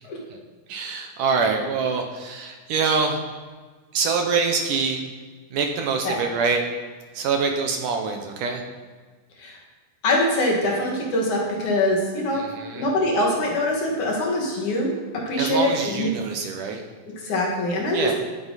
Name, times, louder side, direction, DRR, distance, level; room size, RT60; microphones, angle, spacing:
voice 1, 0.7-3.2 3.9-5.0 5.5-6.6 7.1-8.6 12.3-12.9 15.4-16.8 17.9-18.1, right 5 dB, 70° right, 3 dB, 2.4 m, -25 dB
voice 2, 10.0-12.4 12.7-14.9 15.3-16.1 17.2-18.1, left 1 dB, 60° left, -2 dB, 3.3 m, -23 dB
17.0 x 9.3 x 4.2 m, 1.4 s
omnidirectional pair, 4.3 m